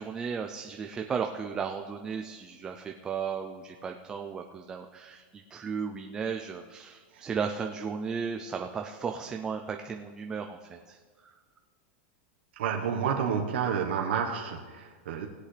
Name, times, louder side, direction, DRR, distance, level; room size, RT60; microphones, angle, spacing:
voice 1, 0.0-11.0, right 6 dB, 10° right, 4 dB, 0.4 m, -35 dB
voice 2, 12.6-15.3, right 7 dB, 75° right, 0 dB, 1.2 m, -29 dB
20.0 x 8.1 x 3.3 m, 1.5 s
supercardioid pair, 175°, 6 cm